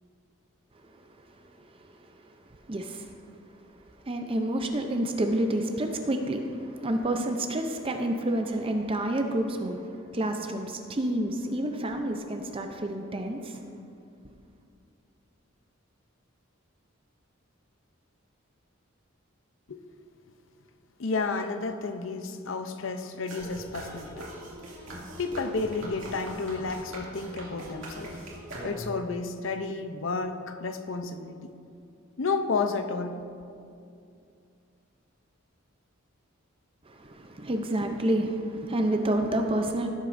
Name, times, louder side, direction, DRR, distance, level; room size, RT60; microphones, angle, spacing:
voice 1, 2.7-3.1 4.0-13.7 36.9-39.9, right 1 dB, 25° right, 4 dB, 0.5 m, -29 dB
voice 2, 21.0-24.3 25.2-28.3 28.6-31.5 32.2-33.2, left 4 dB, 65° left, 8 dB, 0.6 m, -31 dB
sound 1, 23.3-29.1, right 1 dB, 65° right, 2.4 m, -41 dB
17.0 x 8.1 x 2.6 m, 2.5 s
head